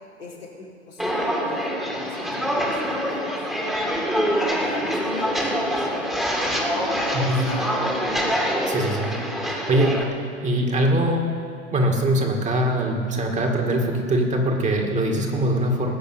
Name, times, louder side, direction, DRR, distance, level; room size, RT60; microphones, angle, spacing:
voice 1, 0.2-1.8 2.0-3.7 4.4-6.1 6.9-7.7 8.5-8.8, left 3 dB, 90° left, -5 dB, 4.0 m, -39 dB
Walk footsteps, 1.0-10.0, equal, ahead, 2.1 m, -25 dB
voice 2, 8.7-9.2 9.4-10.0 10.4-11.2 11.7-15.9, right 1 dB, 20° right, 1 dB, 2.2 m, -22 dB
19.0 x 6.6 x 8.2 m, 2.5 s
figure-of-eight pair, 95°, 36 cm